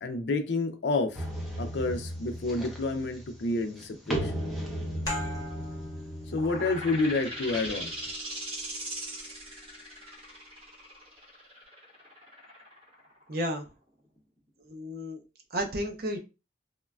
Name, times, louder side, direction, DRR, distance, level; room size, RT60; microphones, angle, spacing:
voice 1, 0.0-1.3 1.6-4.3 6.3-7.9, left 3 dB, 70° left, 0.4 m, -29 dB
sound 1, 1.1-8.1, equal, ahead, 0.5 m, -36 dB
sound 2, 5.1-10.3, left 1 dB, 20° left, 0.9 m, -42 dB
sound 3, 6.3-13.7, equal, 30° right, 1.0 m, -39 dB
voice 2, 13.3-13.7 14.7-15.2 15.5-16.2, equal, 55° right, 0.5 m, -32 dB
3.0 x 2.2 x 2.3 m
head